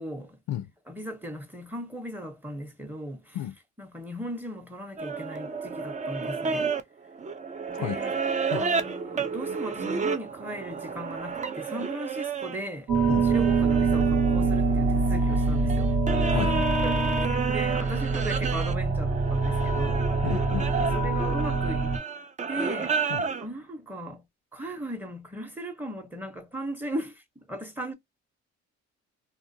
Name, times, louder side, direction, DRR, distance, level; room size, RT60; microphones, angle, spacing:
voice 1, 0.0-0.4 0.9-3.4 3.8-6.7 7.7-8.1 8.6-12.9 13.2-15.9 16.3-20.1 20.7-22.0 22.5-23.0 23.4-24.2 24.5-27.9, right 1 dB, 5° right, 0.8 m, -37 dB
sound 1, 5.0-12.6 12.9-23.5, right 5 dB, 25° right, 0.4 m, -31 dB
sound 2, 12.9-22.0, right 3 dB, 75° right, 1.0 m, -25 dB
voice 2, 20.2-20.9 23.1-23.2, left 11 dB, 70° left, 0.4 m, -32 dB
2.4 x 2.1 x 2.6 m
cardioid pair, 90°, 30 cm